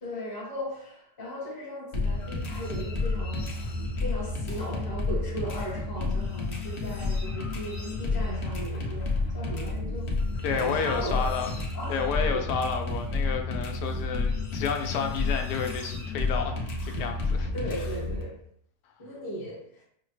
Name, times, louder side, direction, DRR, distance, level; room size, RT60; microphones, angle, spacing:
voice 1, 0.0-3.5 4.0-10.1 10.5-11.3 11.7-12.0 12.3-12.4 17.4-18.4 19.0-19.8, equal, 15° left, 0.8 m, -37 dB
sound 1, 1.9-18.2, left 3 dB, 55° left, 0.9 m, -30 dB
voice 2, 10.4-11.5 11.9-16.6 16.8-17.5, left 5 dB, 80° left, 1.2 m, -30 dB
5.6 x 2.1 x 3.1 m
omnidirectional pair, 1.8 m